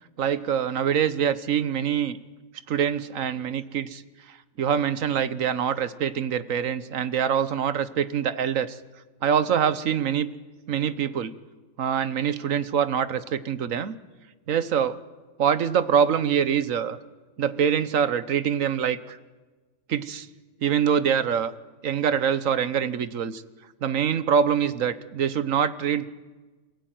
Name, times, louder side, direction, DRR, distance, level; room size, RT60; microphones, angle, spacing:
voice 1, 0.2-2.2 2.7-4.0 4.3-8.8 9.2-10.3 10.7-11.3 11.8-14.0 14.5-15.0 15.4-17.0 17.4-19.2 19.9-20.3 20.6-21.5 21.8-23.4 23.8-26.1, right 8 dB, 85° right, 14 dB, 1.4 m, -24 dB
28.0 x 16.0 x 9.2 m, 1.3 s
omnidirectional pair, 1.3 m